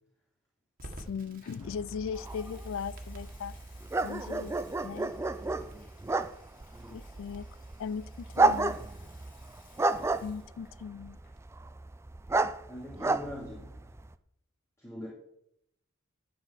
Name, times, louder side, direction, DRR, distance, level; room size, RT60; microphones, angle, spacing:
voice 1, 0.8-3.5 4.0-4.5 4.8-5.1 6.9-7.5 7.8-8.8 10.2-11.2, left 6 dB, 65° left, 0.4 m, -38 dB
Crackle, 0.8-11.5, right 1 dB, 40° right, 1.7 m, -54 dB
Water tap faucet / Sink (filling or washing) / Liquid, 1.4-1.6 2.1-10.9 11.1-11.5, left 3 dB, 40° left, 2.6 m, -61 dB
sound 1, 1.6-14.1, right 3 dB, 10° right, 0.3 m, -32 dB
voice 2, 12.7-13.7 14.8-15.1, left 1 dB, 15° left, 2.5 m, -42 dB
11.5 x 4.1 x 7.4 m
head